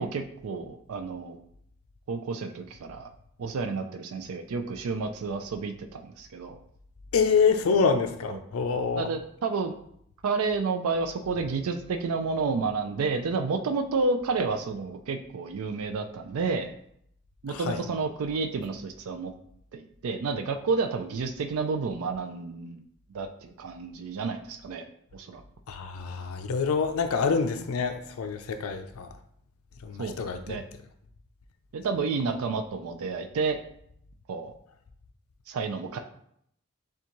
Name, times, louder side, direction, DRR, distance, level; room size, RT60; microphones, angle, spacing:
voice 1, 0.0-1.4 2.1-3.1 3.4-6.6 8.3-8.4 9.0-9.7 10.2-16.7 17.4-19.3 19.7-22.8 23.1-24.9 25.1-25.4 30.0-30.2 30.5-30.6 31.7-33.6 34.3-34.5 35.5-36.0, right 4 dB, 85° right, 7 dB, 0.4 m, -30 dB
voice 2, 7.1-9.1 17.5-17.8 25.7-29.1 29.8-30.6, left 5 dB, 80° left, 7 dB, 0.4 m, -26 dB
6.8 x 2.4 x 3.0 m, 0.70 s
head